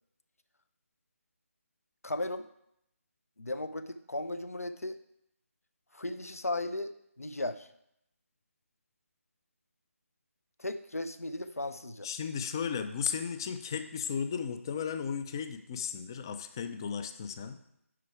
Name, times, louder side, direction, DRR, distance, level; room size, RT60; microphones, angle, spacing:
voice 1, 2.0-2.4 3.4-5.0 5.9-6.9 7.2-7.7 10.6-12.1, left 2 dB, 75° left, 12 dB, 0.8 m, -36 dB
voice 2, 12.0-17.6, left 7 dB, 15° left, 10 dB, 0.4 m, -35 dB
11.0 x 4.7 x 4.7 m, 0.77 s
figure-of-eight pair, 155°, 8 cm